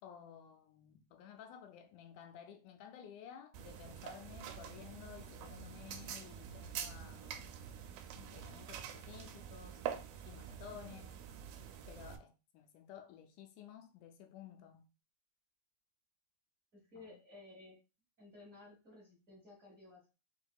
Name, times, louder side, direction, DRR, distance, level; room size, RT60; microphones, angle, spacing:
voice 1, 0.0-7.5 8.2-9.8 10.2-11.2 11.9-14.8 16.9-17.2, left 9 dB, 80° left, 2.0 m, -54 dB
sound 1, 3.5-12.2, right 8 dB, 80° right, 1.9 m, -46 dB
voice 2, 16.7-17.8 18.2-20.1, left 2 dB, 35° right, 1.4 m, -56 dB
5.8 x 2.7 x 2.3 m
omnidirectional pair, 3.6 m